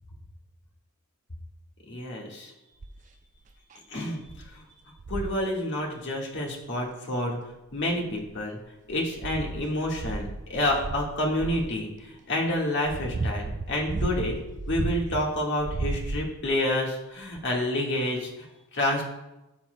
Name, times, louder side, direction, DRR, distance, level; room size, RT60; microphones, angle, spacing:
voice 1, 1.9-2.5 3.9-4.3 4.5-4.6 5.1-7.4 7.7-8.6 8.9-14.4 14.7-18.3 18.7-19.0, left 1 dB, 55° left, -1 dB, 1.6 m, -28 dB
sound 1, 2.8-3.1 3.7-3.8 4.3-4.5 5.0-5.4 6.8-6.9 7.7-8.4 8.9-11.8 12.5-15.2 15.6-16.5 17.4-17.5, right 2 dB, 35° right, 0.4 m, -33 dB
13.0 x 7.0 x 2.2 m, 0.96 s
head